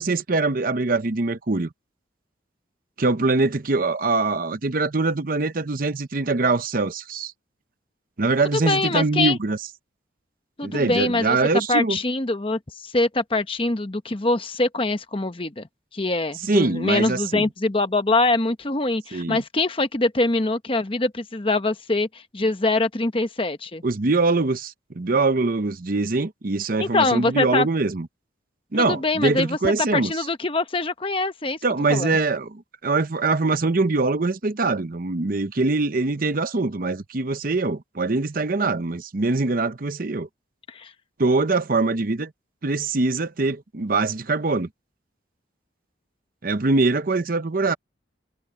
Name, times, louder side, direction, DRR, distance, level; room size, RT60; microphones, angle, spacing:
voice 1, 0.0-1.7 3.0-7.3 8.2-9.6 10.6-12.0 16.5-17.5 19.1-19.4 23.8-28.1 28.7-30.3 31.6-40.3 41.2-42.3 42.6-44.7 46.4-47.7, right 3 dB, 50° right, 0.8 m, -23 dB
voice 2, 8.5-9.4 10.6-11.4 11.7-15.7 15.9-22.1 22.3-23.8 26.8-27.7 28.7-31.6 31.9-32.2 40.7-40.9, left 2 dB, 30° left, 1.0 m, -24 dB
head